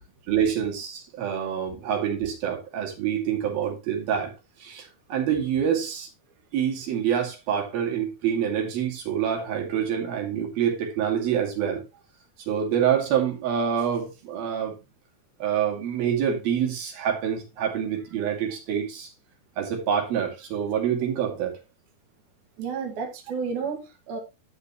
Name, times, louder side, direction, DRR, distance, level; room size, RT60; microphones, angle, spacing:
voice 1, 0.3-4.3 4.6-6.1 6.5-11.8 12.5-14.8 15.4-19.1 19.6-21.6, right 8 dB, 85° right, 4.3 m, -26 dB
voice 2, 22.6-24.2, right 5 dB, 60° right, 3.2 m, -31 dB
11.5 x 8.3 x 3.0 m
omnidirectional pair, 4.1 m